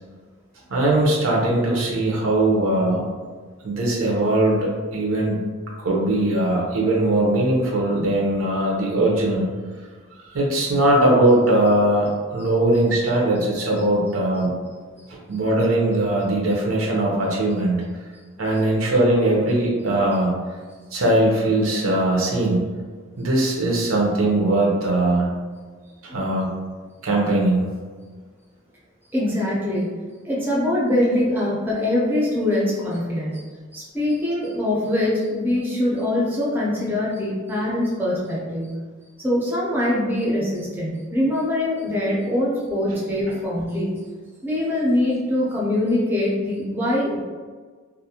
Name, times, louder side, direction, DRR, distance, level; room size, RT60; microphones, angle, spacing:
voice 1, 0.7-3.0 3.6-5.4 5.8-9.5 10.2-14.5 15.1-17.8 18.4-20.3 20.9-22.6 23.2-25.3 26.0-26.5 27.0-27.7 42.9-43.0, right 1 dB, 80° right, -3 dB, 0.6 m, -20 dB
voice 2, 29.1-29.9 30.2-33.4 33.7-38.8 39.2-43.9 44.4-47.2, left 1 dB, 10° right, -6 dB, 0.4 m, -23 dB
2.4 x 2.1 x 2.7 m, 1.5 s
head